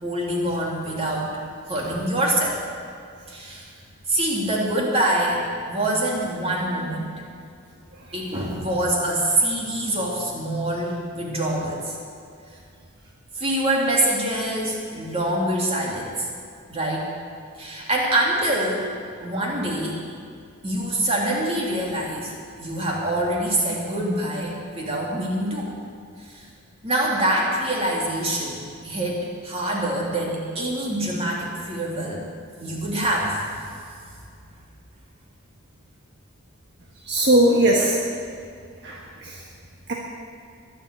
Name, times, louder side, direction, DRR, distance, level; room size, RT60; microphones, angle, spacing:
voice 1, 0.0-1.4 1.7-2.6 3.3-3.6 4.1-5.4 5.7-7.2 8.1-12.0 13.3-16.3 16.7-17.1 17.6-18.9 19.2-20.1 20.6-22.3 22.6-25.7 26.2-26.5 26.8-32.2 32.6-33.5, right 1 dB, 25° right, -3 dB, 3.1 m, -25 dB
voice 2, 37.1-38.0 38.8-39.4 39.9-40.0, right 1 dB, 50° right, -2 dB, 1.5 m, -19 dB
22.5 x 7.5 x 8.3 m, 2.4 s
head